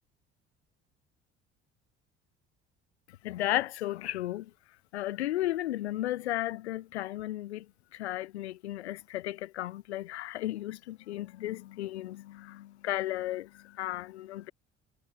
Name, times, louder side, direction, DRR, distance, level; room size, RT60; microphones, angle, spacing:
voice 1, 3.2-4.5 4.9-7.7 7.9-14.5, left 15 dB, 70° left, 1.0 m, -34 dB
figure-of-eight pair, 55°, 34 cm